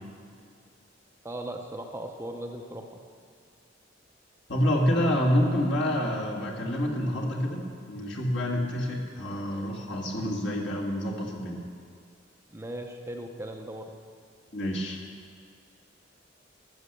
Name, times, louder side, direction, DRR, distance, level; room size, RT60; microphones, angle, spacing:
voice 1, 1.2-3.0 12.5-13.9, right 1 dB, 15° right, 3 dB, 0.7 m, -38 dB
voice 2, 4.5-11.6 14.5-15.0, equal, 65° left, -2 dB, 1.9 m, -27 dB
13.0 x 7.4 x 6.8 m, 2.2 s
head